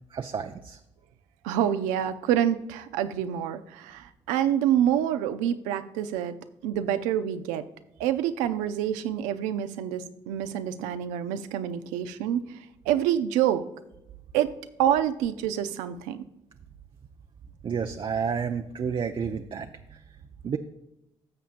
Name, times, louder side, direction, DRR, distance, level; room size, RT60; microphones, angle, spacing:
voice 1, 0.1-0.8 17.6-20.0 20.4-20.6, right 6 dB, 45° right, 5 dB, 0.6 m, -30 dB
voice 2, 1.4-6.4 6.6-7.6 8.0-13.6 14.3-14.5 14.8-16.2, right 10 dB, 85° right, 10 dB, 0.5 m, -27 dB
12.5 x 7.1 x 2.5 m, 0.87 s
supercardioid pair, 60°, 12 cm